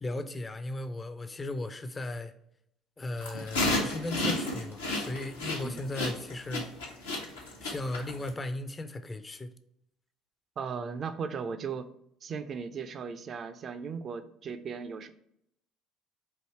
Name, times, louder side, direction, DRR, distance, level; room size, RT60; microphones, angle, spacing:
voice 1, 0.0-2.3 3.0-6.7 7.6-9.5, left 2 dB, 25° left, 0.5 m, -36 dB
sound 1, 3.2-8.3, left 2 dB, 80° left, 0.8 m, -31 dB
voice 2, 10.6-11.9 12.2-15.1, right 6 dB, 40° right, 0.4 m, -37 dB
4.7 x 2.6 x 4.3 m
figure-of-eight pair, 55°, 0 cm